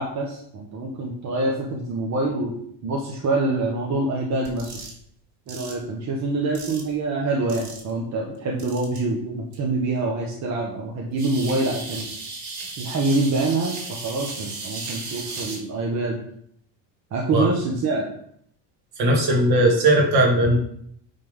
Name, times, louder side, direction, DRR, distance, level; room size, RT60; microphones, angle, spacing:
voice 1, 0.0-2.5 2.8-4.8 5.5-12.1 12.8-16.2 17.1-18.1, right 2 dB, 35° right, -1 dB, 1.3 m, -25 dB
sound 1, 4.4-4.9 5.5-5.7 6.5-6.9 7.5-7.9 8.6-9.0 9.5-9.6 11.2-15.6, right 3 dB, 70° right, 3.1 m, -35 dB
voice 2, 19.0-20.6, right 1 dB, 50° right, 0 dB, 2.5 m, -18 dB
9.3 x 3.7 x 5.5 m, 0.67 s
cardioid pair, 155°, 48 cm